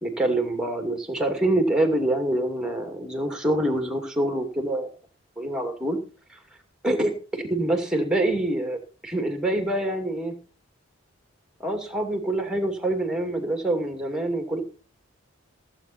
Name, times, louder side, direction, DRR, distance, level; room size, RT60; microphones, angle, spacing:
voice 1, 0.0-4.9 5.4-6.0 6.3-6.4 6.8-10.3 11.6-14.6, right 1 dB, 5° right, 6 dB, 2.5 m, -25 dB
16.5 x 8.1 x 4.3 m, 0.37 s
head